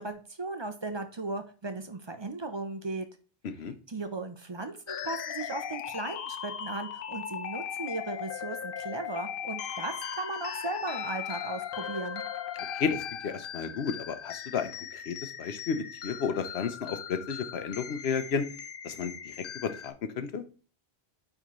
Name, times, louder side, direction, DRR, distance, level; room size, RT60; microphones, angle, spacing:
voice 1, 0.0-3.1 3.9-12.2, right 3 dB, 35° right, 8 dB, 0.6 m, -37 dB
voice 2, 3.4-3.7 12.7-18.5 18.8-19.4 19.6-20.4, left 6 dB, 85° left, 10 dB, 1.0 m, -32 dB
sound 1, 4.9-19.9, left 8 dB, 65° left, 0.8 m, -38 dB
8.8 x 3.9 x 3.0 m, 0.38 s
omnidirectional pair, 1.0 m